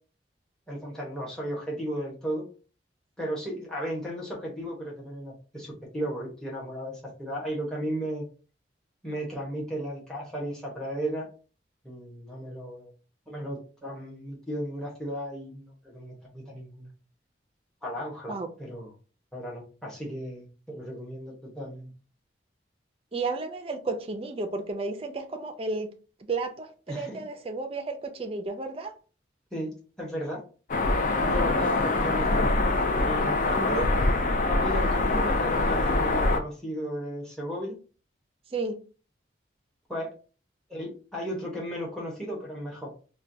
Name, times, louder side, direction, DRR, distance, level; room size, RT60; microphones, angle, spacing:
voice 1, 0.7-2.5 3.2-8.2 9.0-11.3 11.8-12.9 13.3-16.9 17.8-18.9 19.3-21.9 26.9-27.2 29.5-30.4 31.2-32.5 33.0-33.9 34.4-37.8 39.9-40.1 40.7-42.9, equal, 5° left, 1.0 m, -35 dB
voice 2, 23.1-25.9 26.3-28.9 38.5-38.8, right 3 dB, 30° right, 0.4 m, -32 dB
sound 1, 30.7-36.4, left 2 dB, 45° left, 0.4 m, -24 dB
4.4 x 2.2 x 2.6 m
head